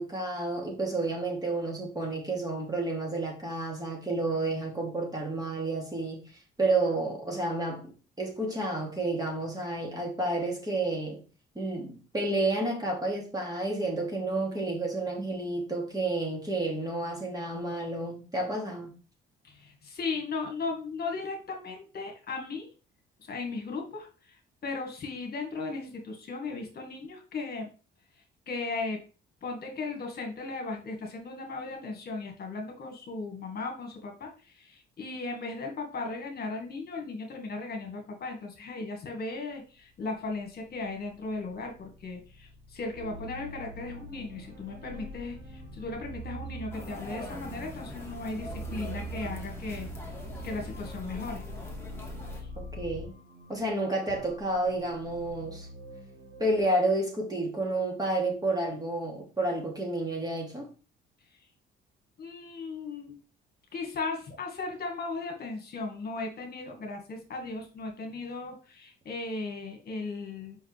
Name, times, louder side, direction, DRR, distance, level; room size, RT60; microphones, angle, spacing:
voice 1, 0.0-7.9 8.2-11.2 11.5-18.9 52.6-53.1 53.5-55.7 56.4-60.7, right 2 dB, 20° right, 2.8 m, -30 dB
voice 2, 19.4-22.7 23.2-27.7 28.5-29.0 29.4-49.9 50.4-51.4 52.4-52.5 62.2-63.2 63.7-70.6, left 3 dB, 50° left, 1.8 m, -37 dB
sound 1, 39.8-53.0, left 3 dB, 60° right, 3.5 m, -46 dB
sound 2, 42.9-56.6, right 4 dB, 85° right, 2.3 m, -45 dB
sound 3, 46.7-52.4, left 1 dB, 10° left, 2.2 m, -44 dB
5.6 x 5.4 x 3.4 m
cardioid pair, 90°, 21 cm